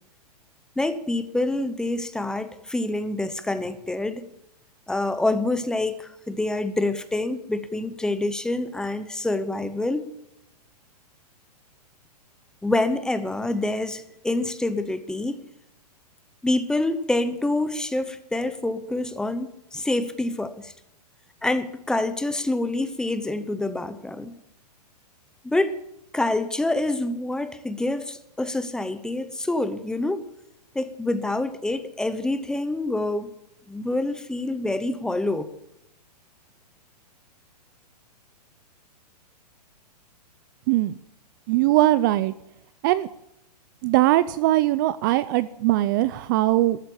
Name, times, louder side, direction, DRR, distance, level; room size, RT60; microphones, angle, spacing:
voice 1, 0.8-4.3 4.9-10.0 12.6-15.4 16.4-20.7 21.4-24.3 25.4-25.8 26.1-30.2 30.7-33.3 33.7-35.5, left 2 dB, 5° left, 12 dB, 0.8 m, -26 dB
voice 2, 40.7-41.0 41.5-42.3 42.8-43.1 43.8-46.8, right 16 dB, 30° right, 16 dB, 0.5 m, -21 dB
14.0 x 13.0 x 7.0 m, 0.81 s
hypercardioid pair, 150°, 21 cm